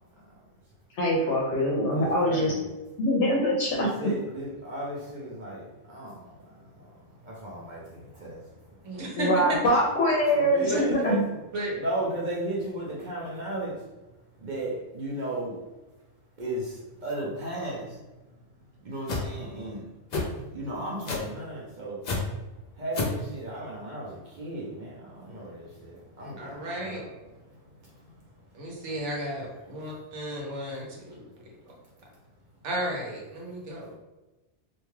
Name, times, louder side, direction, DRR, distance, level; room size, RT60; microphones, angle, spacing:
voice 1, 1.0-2.5 3.0-3.9 9.2-11.2, equal, 80° left, -3 dB, 0.9 m, -23 dB
voice 2, 1.9-2.7 3.7-9.0 10.3-11.2 11.7-13.9 14.4-15.6 16.4-18.0 18.8-19.9 20.5-22.0 22.7-27.1 27.4-28.3, right 1 dB, 50° right, -5 dB, 0.6 m, -35 dB
voice 3, 8.8-9.3 10.7-10.8 11.1-11.2 11.5-11.8 26.4-27.0 28.5-31.3 32.6-34.0, right 1 dB, 85° right, -2 dB, 1.1 m, -34 dB
sound 1, 19.1-19.3 20.1-20.3 21.1-21.3 22.0-22.2 22.9-23.2, left 3 dB, 50° left, 0.5 m, -28 dB
2.6 x 2.2 x 3.1 m, 1.1 s
omnidirectional pair, 1.2 m